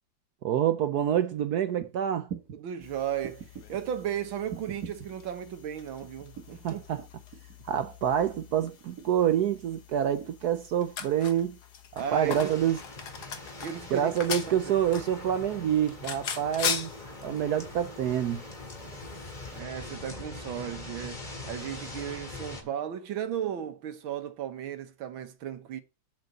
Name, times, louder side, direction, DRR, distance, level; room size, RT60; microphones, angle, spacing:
voice 1, 0.4-2.3 6.6-7.0 7.7-11.6 11.9-12.8 13.9-16.9 17.2-18.4, right 10 dB, 70° right, 1.0 m, -27 dB
sound 1, 1.8-1.9 2.3-2.6 3.2-3.8 4.5-5.1 6.0-6.6 7.0-7.6 8.6-9.3 10.2-10.3, right 8 dB, 50° right, 1.9 m, -41 dB
voice 2, 2.5-6.8 12.0-12.5 13.6-14.1 14.5-14.6 17.1-17.2 19.5-25.8, right 9 dB, 85° right, 1.9 m, -35 dB
sound 2, 2.8-19.6, left 7 dB, 60° left, 1.7 m, -41 dB
sound 3, 12.0-22.6, left 2 dB, 25° left, 2.2 m, -43 dB
7.8 x 5.4 x 7.7 m
omnidirectional pair, 2.1 m